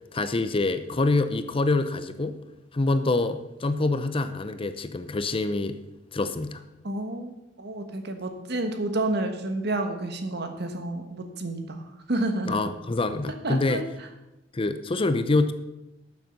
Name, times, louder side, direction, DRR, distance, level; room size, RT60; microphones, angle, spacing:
voice 1, 0.1-2.4 2.7-5.8 6.1-6.6 12.5-13.8 14.5-15.5, left 2 dB, 30° left, 11 dB, 0.6 m, -26 dB
voice 2, 6.8-7.3 7.6-12.6 13.4-13.8, right 2 dB, 60° right, 7 dB, 1.3 m, -30 dB
12.0 x 7.1 x 5.3 m, 0.95 s
head